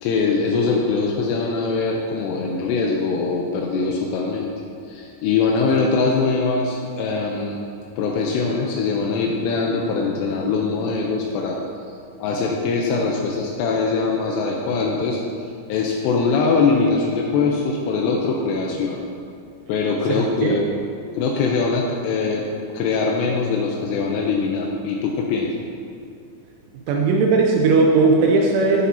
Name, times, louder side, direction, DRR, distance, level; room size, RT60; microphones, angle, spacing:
voice 1, 0.0-4.5 4.9-7.6 8.0-11.6 12.2-15.2 15.7-19.0 19.7-20.7 21.1-22.5 22.7-25.5, left 4 dB, 85° left, -1 dB, 2.5 m, -22 dB
voice 2, 26.9-28.9, right 3 dB, 85° right, 0 dB, 3.1 m, -17 dB
11.0 x 10.0 x 2.8 m, 2.6 s
omnidirectional pair, 5.5 m